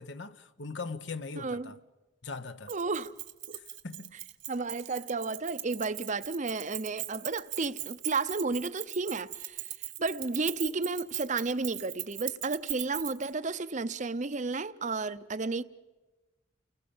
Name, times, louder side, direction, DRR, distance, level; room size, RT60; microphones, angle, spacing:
voice 1, 0.0-1.8 2.2-2.7 3.5-4.1, left 4 dB, 70° left, 1.0 m, -40 dB
voice 2, 1.4-1.7 2.7-3.1 3.5-3.6 4.5-9.6 10.0-15.6, right 3 dB, 40° right, 0.7 m, -32 dB
Keys jangling, 2.7-13.3, right 17 dB, 80° right, 1.5 m, -39 dB
30.0 x 20.0 x 7.2 m
head